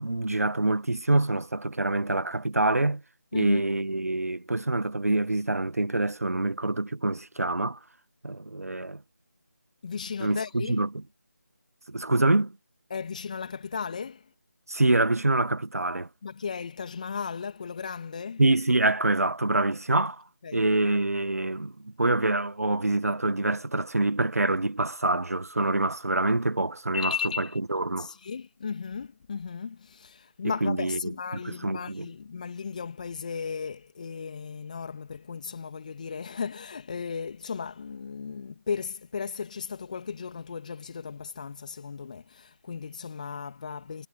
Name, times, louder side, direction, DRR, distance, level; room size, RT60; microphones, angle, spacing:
voice 1, 0.0-3.0 3.3-7.8 8.2-9.0 10.2-10.9 11.9-12.5 14.7-16.1 18.4-20.2 20.5-27.1 27.7-28.1 30.6-31.0 31.4-32.1, right 2 dB, 60° right, 1.5 m, -26 dB
voice 2, 3.3-3.6 9.8-10.8 12.9-14.3 16.2-18.4 20.4-20.7 26.9-27.6 28.0-44.1, left 6 dB, 25° left, 2.3 m, -35 dB
figure-of-eight pair, 160°, 9 cm